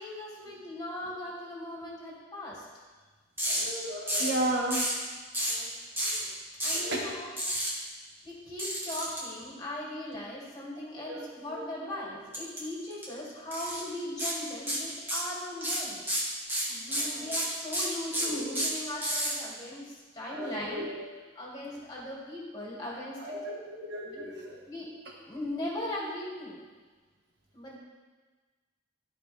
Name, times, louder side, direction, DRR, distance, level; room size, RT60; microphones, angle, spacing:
voice 1, 0.0-2.7 6.6-7.3 8.2-16.0 16.7-20.9 21.3-23.3 24.0-24.3 24.7-24.9 25.3-26.6 27.5-27.8, left 1 dB, 20° left, -5 dB, 2.2 m, -39 dB
sound 1, 3.4-3.6 4.1-4.4 4.7-5.0 5.3-5.6 6.0-6.2 6.6-6.9 7.4-7.7 8.6-9.2 12.3-12.6 12.9-13.0 13.5-13.8 14.2-14.4 14.7-15.3 15.6-19.3, equal, 10° right, 1.7 m, -30 dB
voice 2, 3.4-4.9 5.4-5.8 6.0-6.2 6.7-7.1 11.1-11.2 11.5-11.6 16.8-17.3 18.3-18.4 20.3-21.0 23.2-24.6, right 1 dB, 65° right, -1 dB, 1.5 m, -35 dB
13.0 x 4.5 x 3.4 m, 1.4 s
head